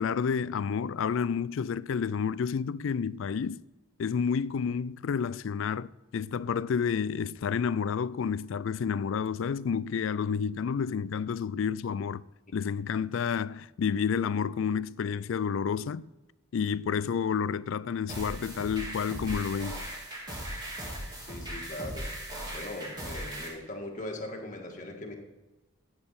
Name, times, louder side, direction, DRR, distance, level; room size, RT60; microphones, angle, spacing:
voice 1, 0.0-3.6 4.0-12.2 12.5-16.1 16.5-19.8, left 6 dB, 60° left, 0.3 m, -30 dB
sound 1, 18.1-23.5, right 1 dB, 20° right, 3.4 m, -38 dB
voice 2, 21.3-22.1 22.5-25.1, left 1 dB, 35° left, 1.9 m, -40 dB
14.0 x 8.7 x 4.2 m
head